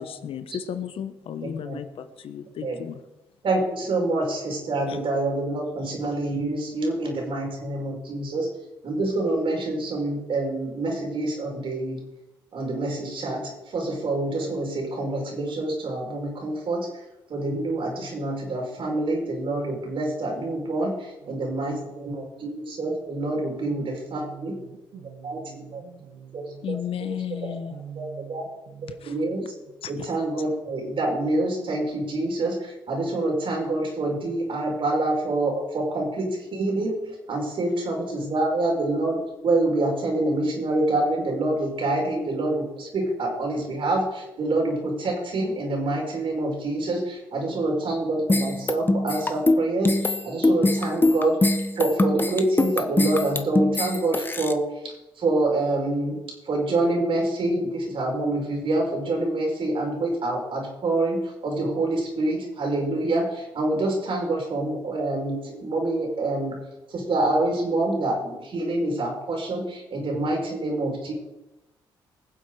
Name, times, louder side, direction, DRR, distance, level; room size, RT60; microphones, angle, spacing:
voice 1, 0.0-1.8 2.2-3.0 4.9-5.0 26.6-27.8 29.0-29.1, left 9 dB, 65° left, 10 dB, 1.3 m, -33 dB
voice 2, 1.4-1.8 2.6-2.8 3.4-8.5 8.8-12.0 12.5-16.9 17.3-24.6 25.2-25.8 26.3-27.1 27.4-27.5 28.0-28.5 29.0-29.5 29.9-51.5 51.8-66.6 66.9-71.1, right 2 dB, 60° right, 0 dB, 5.4 m, -26 dB
voice 3, 21.2-22.5 23.7-26.6 27.7-29.3 30.0-30.1, right 7 dB, 75° right, 2 dB, 2.0 m, -45 dB
sound 1, 48.3-54.5, left 2 dB, 20° left, 1.4 m, -22 dB
20.5 x 7.5 x 4.9 m, 0.97 s
supercardioid pair, 55°, 10 cm